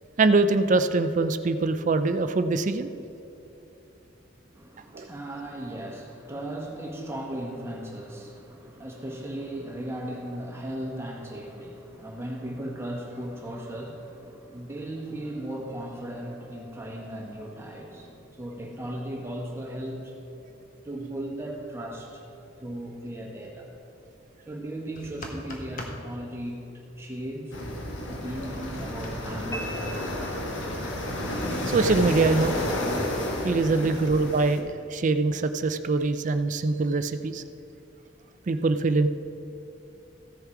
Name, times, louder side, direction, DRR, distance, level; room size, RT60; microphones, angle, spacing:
voice 1, 0.2-2.9 4.9-5.1 31.7-32.6 33.4-37.4 38.5-39.1, right 3 dB, 40° right, 10 dB, 0.4 m, -23 dB
voice 2, 4.5-20.1 20.8-23.7 24.5-27.6 28.1-30.2 33.8-34.0, right 1 dB, 15° right, -1 dB, 1.4 m, -37 dB
sound 1, 25.0-26.0 29.0-29.1, left 1 dB, 45° left, 1.3 m, -38 dB
sound 2, 27.5-34.6, left 1 dB, 75° left, 1.5 m, -31 dB
sound 3, 29.5-31.0, equal, 15° left, 0.8 m, -40 dB
15.0 x 7.0 x 4.7 m, 3.0 s
head